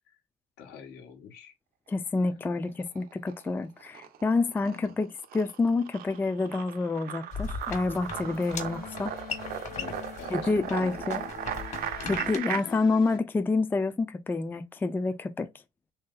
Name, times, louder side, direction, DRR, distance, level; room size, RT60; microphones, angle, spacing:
voice 1, 0.6-1.5 2.2-2.6 4.6-5.0 9.8-11.3 12.0-12.3, left 8 dB, 80° left, 1.2 m, -46 dB
voice 2, 1.9-9.1 10.3-11.2 12.1-15.5, left 3 dB, 10° left, 0.3 m, -28 dB
sound 1, 2.6-3.5 3.8-12.6, right 10 dB, 60° right, 0.5 m, -37 dB
sound 2, 7.3-12.4, left 5 dB, 45° left, 1.4 m, -39 dB
sound 3, 8.1-13.2, left 7 dB, 60° left, 0.7 m, -45 dB
3.2 x 2.7 x 3.8 m
cardioid pair, 110°, 17 cm